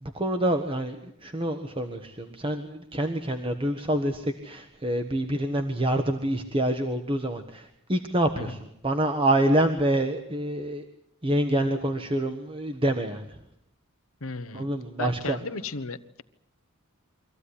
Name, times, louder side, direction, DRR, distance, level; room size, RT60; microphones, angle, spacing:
voice 1, 0.0-10.8 11.2-13.4 14.5-15.4, right 1 dB, 25° right, 6 dB, 1.4 m, -27 dB
voice 2, 14.2-14.7 15.0-16.2, left 3 dB, 85° left, 11 dB, 1.2 m, -35 dB
24.5 x 15.0 x 10.0 m, 0.77 s
head